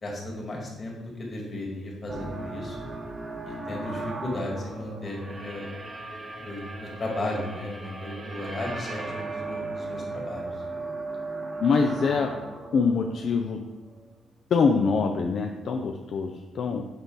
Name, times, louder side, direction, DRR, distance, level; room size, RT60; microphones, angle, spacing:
voice 1, 0.0-2.8 3.5-5.7 6.4-10.5, left 1 dB, 40° left, -2 dB, 2.0 m, -35 dB
sound 1, 2.1-14.2, right 2 dB, 30° right, 1.0 m, -37 dB
voice 2, 11.6-12.3 12.7-13.6 14.5-16.8, left 5 dB, 60° left, 3 dB, 0.5 m, -24 dB
6.9 x 4.0 x 3.9 m, 1.1 s
cardioid pair, 90°, 0 cm